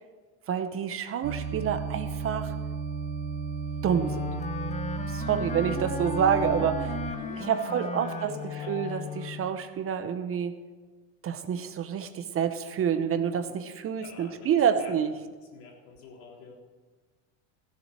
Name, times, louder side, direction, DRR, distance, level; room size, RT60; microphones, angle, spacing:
voice 1, 0.5-2.6 3.8-4.3 5.1-6.9 7.4-10.6 11.2-15.1, right 8 dB, 30° right, 10 dB, 0.8 m, -28 dB
sound 1, 1.2-7.1, right 5 dB, 60° right, 1.6 m, -34 dB
Wind instrument woodwind instrument, 3.8-9.6, left 5 dB, 15° left, 0.7 m, -36 dB
voice 2, 7.0-8.8 13.9-14.5 14.8-14.9 15.2-16.6, left 4 dB, 85° left, -2 dB, 3.8 m, -48 dB
15.5 x 7.3 x 6.3 m, 1.4 s
cardioid pair, 135°, 42 cm